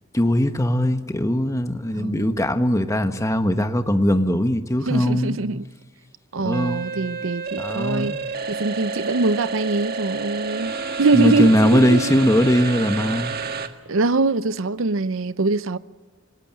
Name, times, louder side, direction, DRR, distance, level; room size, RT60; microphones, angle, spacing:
voice 1, 0.1-5.4 6.4-6.8 7.6-8.2 11.1-13.3, equal, 15° left, 1.3 m, -20 dB
voice 2, 1.9-2.4 4.9-5.7 6.3-8.2 8.5-10.7 11.0-12.1 13.9-15.8, right 3 dB, 75° right, 0.7 m, -23 dB
sound 1, 6.5-13.7, right 4 dB, 50° right, 1.7 m, -30 dB
26.0 x 19.5 x 8.7 m
head